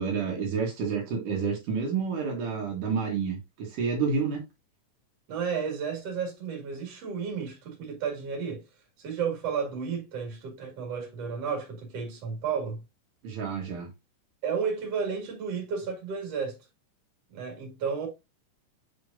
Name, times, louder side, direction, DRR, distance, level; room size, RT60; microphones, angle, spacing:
voice 1, 0.0-4.4 13.2-13.9, right 5 dB, 80° right, 3.1 m, -29 dB
voice 2, 5.3-8.6 9.0-12.8 14.4-16.6 17.3-18.1, right 6 dB, 55° right, 3.1 m, -32 dB
7.4 x 4.9 x 2.6 m
omnidirectional pair, 3.6 m